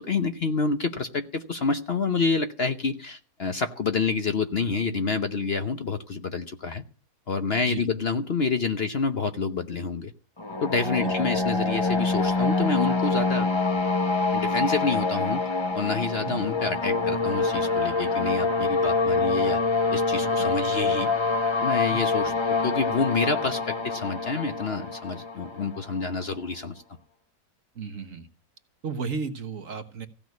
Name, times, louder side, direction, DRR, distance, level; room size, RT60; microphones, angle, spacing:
voice 1, 0.0-6.8 7.3-10.1 10.6-13.5 14.3-15.4 15.7-19.6 19.9-21.1 21.6-22.3 22.6-26.8, left 4 dB, 45° left, 7 dB, 1.0 m, -28 dB
sound 1, 10.4-26.2, left 3 dB, 20° left, 1.2 m, -26 dB
voice 2, 20.2-20.5 21.9-22.0 27.7-28.3 28.8-30.1, right 5 dB, 55° right, 7 dB, 1.7 m, -34 dB
16.0 x 6.1 x 9.4 m, 0.38 s
omnidirectional pair, 1.7 m